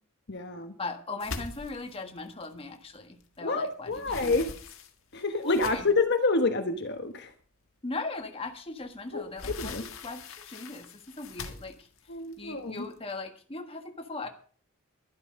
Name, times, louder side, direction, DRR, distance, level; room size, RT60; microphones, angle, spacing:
voice 1, 0.3-0.7 3.4-4.4 5.1-7.3 9.1-9.2 9.6-9.8 12.1-12.8, left 3 dB, 50° left, 6 dB, 1.2 m, -28 dB
voice 2, 0.8-4.5 5.4-5.9 7.8-11.9 12.4-14.3, left 3 dB, 25° left, 5 dB, 1.5 m, -39 dB
sound 1, 1.2-3.4 3.7-6.1 6.8-6.9 7.3-7.4 8.8-13.1, left 4 dB, 70° left, 1.7 m, -42 dB
12.0 x 11.5 x 5.3 m, 0.43 s
head